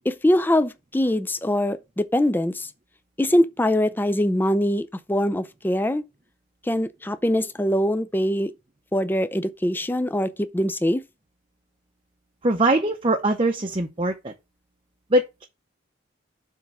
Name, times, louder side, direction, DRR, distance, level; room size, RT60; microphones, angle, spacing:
voice 1, 0.1-2.7 3.2-6.0 6.6-8.5 8.9-11.0, left 1 dB, 10° left, 0.4 m, -23 dB
voice 2, 12.4-14.3 15.1-15.4, right 1 dB, 30° right, 0.7 m, -22 dB
7.6 x 3.5 x 5.9 m
head